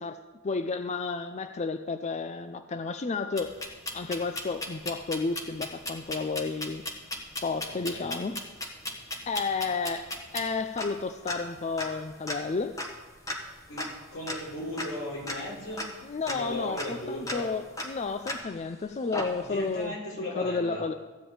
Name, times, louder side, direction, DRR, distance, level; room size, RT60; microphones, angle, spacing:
voice 1, 0.0-3.6 3.9-6.8 7.4-8.4 9.3-12.7 16.1-19.9 20.4-20.9, left 4 dB, 35° left, 8 dB, 0.4 m, -32 dB
sound 1, 3.4-18.7 19.1-19.7, left 1 dB, 15° left, 1.3 m, -38 dB
voice 2, 7.7-8.1 13.7-15.9 16.3-17.5 19.4-20.9, left 1 dB, 85° left, -3 dB, 3.5 m, -37 dB
14.5 x 5.2 x 8.7 m, 1.3 s
head